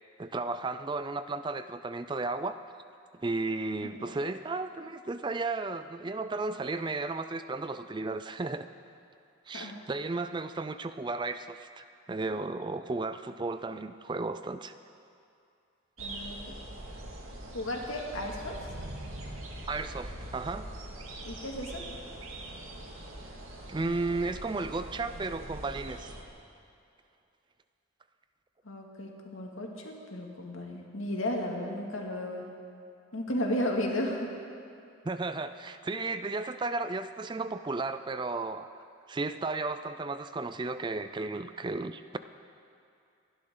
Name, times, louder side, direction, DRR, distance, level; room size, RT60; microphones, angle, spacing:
voice 1, 0.2-2.6 3.2-8.7 9.5-14.7 19.7-20.7 23.7-26.1 35.0-38.7 39.1-42.2, right 3 dB, 20° right, 11 dB, 0.3 m, -34 dB
voice 2, 3.8-4.2 9.5-9.8 16.0-16.4 17.1-17.2 17.5-18.6 21.2-21.8 28.6-32.5 33.1-34.3, left 1 dB, 75° left, 0 dB, 2.2 m, -34 dB
sound 1, 16.0-26.2, right 1 dB, 80° right, 2.0 m, -43 dB
27.5 x 11.5 x 3.8 m, 2.5 s
head